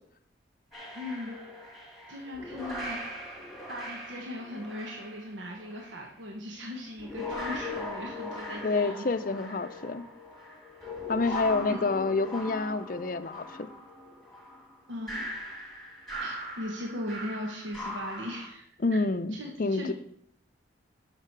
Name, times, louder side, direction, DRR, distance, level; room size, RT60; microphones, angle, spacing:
sound 1, 0.7-6.1 6.8-18.5, left 1 dB, ahead, 2.0 m, -40 dB
voice 1, 0.9-1.3 2.1-3.0 3.7-9.0 11.3-11.4 11.7-11.8 14.9-15.2 16.2-18.7 18.9-19.0 19.3-19.9, left 1 dB, 75° right, 1 dB, 1.2 m, -38 dB
voice 2, 8.6-10.0 11.1-13.7 18.8-19.9, left 3 dB, 45° left, 12 dB, 0.5 m, -28 dB
12.5 x 5.9 x 4.6 m, 0.68 s
head